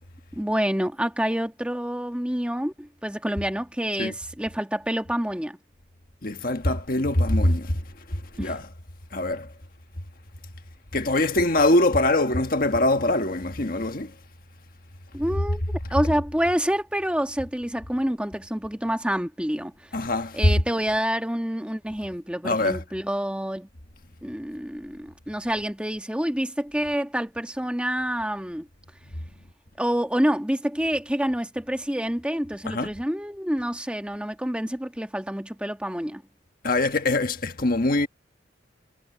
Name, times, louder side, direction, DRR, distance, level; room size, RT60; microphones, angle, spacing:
voice 1, 0.4-5.6 8.4-8.6 15.1-15.6 15.9-19.7 20.3-23.7 24.2-28.7 29.8-36.2, equal, 5° right, 1.4 m, -27 dB
voice 2, 6.2-7.8 8.1-8.7 9.1-9.5 10.9-14.1 19.9-20.5 22.4-22.8 32.6-32.9 36.6-38.1, left 1 dB, 50° left, 1.6 m, -23 dB
head